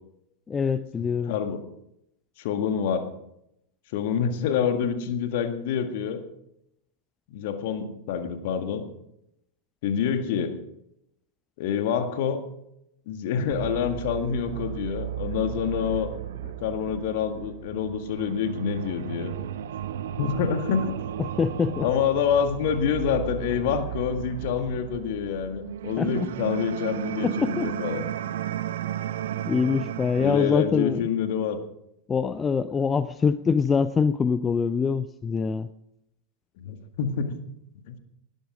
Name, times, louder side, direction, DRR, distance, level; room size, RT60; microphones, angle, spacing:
voice 1, 0.5-1.3 21.2-21.9 26.0-26.3 27.2-27.7 29.5-31.0 32.1-35.7, left 5 dB, 20° left, 14 dB, 0.5 m, -24 dB
voice 2, 1.3-1.6 2.4-3.1 3.9-6.2 7.3-8.8 9.8-10.6 11.6-12.4 13.1-16.1 16.4-19.3 20.2-21.0 21.8-28.1 30.2-31.6 36.6-37.3 37.9-38.0, left 7 dB, 50° left, 8 dB, 1.9 m, -27 dB
sound 1, 13.5-30.5, right 11 dB, 60° right, 0.8 m, -34 dB
19.5 x 12.0 x 5.0 m, 0.79 s
figure-of-eight pair, 90°, 0 cm